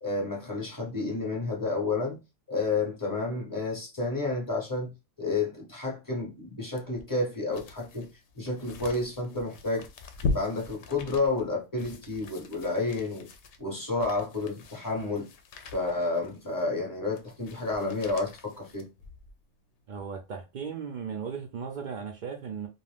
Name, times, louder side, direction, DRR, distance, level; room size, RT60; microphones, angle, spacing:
voice 1, 0.0-2.2 2.5-4.9 5.2-8.1 8.4-9.9 10.2-13.3 13.6-15.3 15.7-18.9, left 3 dB, 20° left, 0.8 m, -30 dB
sound 1, 6.8-19.4 19.9-20.0, left 3 dB, 70° left, 0.8 m, -40 dB
voice 2, 19.9-22.7, right 6 dB, 85° right, 0.4 m, -36 dB
2.5 x 2.3 x 3.3 m
omnidirectional pair, 1.3 m